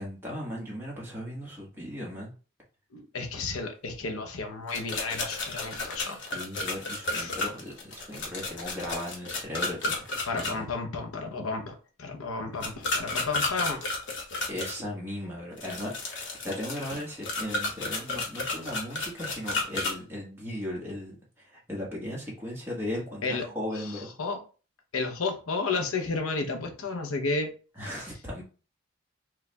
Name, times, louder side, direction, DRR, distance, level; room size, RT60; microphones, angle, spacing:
voice 1, 0.0-2.3 6.0-10.7 14.5-24.1 27.7-28.4, left 1 dB, 10° right, 1.3 m, -37 dB
voice 2, 2.9-6.2 7.1-7.3 10.3-13.8 23.2-23.4 24.2-24.4 24.9-27.5, left 3 dB, 80° left, 0.8 m, -32 dB
sound 1, 4.7-10.5 12.6-14.8 15.6-19.9, left 2 dB, 55° left, 1.1 m, -32 dB
4.7 x 2.4 x 3.3 m
head